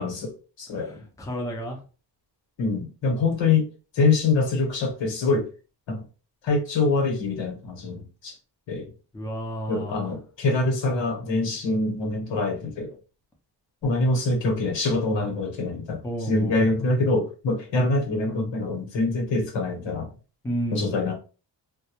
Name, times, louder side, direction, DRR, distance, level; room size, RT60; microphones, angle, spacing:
voice 1, 0.0-1.0 2.6-3.7 3.9-5.5 5.9-6.0 6.4-8.4 8.7-8.9 9.7-12.9 13.8-20.1 20.7-21.2, left 3 dB, 90° left, 1.0 m, -25 dB
voice 2, 0.8-1.8 9.1-10.1 16.0-16.7 20.4-20.9, equal, 10° left, 0.4 m, -31 dB
2.1 x 2.0 x 2.8 m
wide cardioid pair, 160°, 43 cm